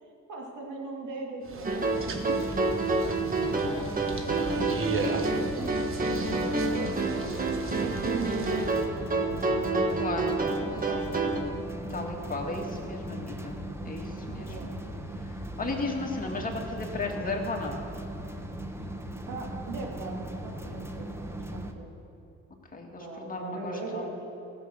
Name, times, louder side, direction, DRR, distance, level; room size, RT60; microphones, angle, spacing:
voice 1, 0.3-6.5 6.8-7.2 7.8-10.1 10.5-11.4 14.5-14.7 15.0-15.1 19.3-21.9 23.0-24.1, right 3 dB, 80° right, 0 dB, 2.5 m, -40 dB
sound 1, 1.4-8.8, right 4 dB, 45° right, 1.3 m, -37 dB
sound 2, 1.6-11.4, right 3 dB, 30° right, 1.5 m, -28 dB
sound 3, 1.9-21.7, right 1 dB, 10° right, 1.0 m, -38 dB
voice 2, 10.0-10.3 11.0-11.1 11.9-13.6 13.8-14.6 15.2-17.8 22.7-24.2, left 3 dB, 30° left, 0 dB, 2.2 m, -35 dB
15.0 x 7.4 x 6.5 m, 3.0 s
cardioid pair, 90°, 30 cm